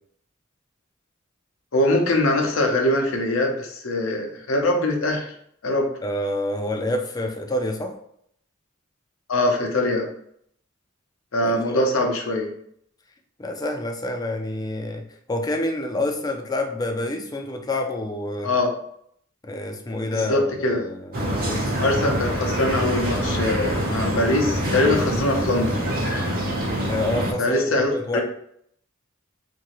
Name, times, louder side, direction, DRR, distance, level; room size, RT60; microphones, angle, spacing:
voice 1, 1.7-5.3 5.6-5.9 9.3-10.1 11.3-12.5 18.4-18.7 20.1-20.9 21.8-25.8 27.4-28.2, left 1 dB, 80° left, 2 dB, 0.7 m, -22 dB
voice 2, 6.0-7.9 11.4-11.9 13.4-18.5 19.4-21.8 26.9-28.2, left 1 dB, 20° left, 4 dB, 0.4 m, -28 dB
sound 1, 21.1-27.3, equal, 45° right, 0.7 m, -25 dB
2.8 x 2.6 x 3.0 m, 0.68 s
head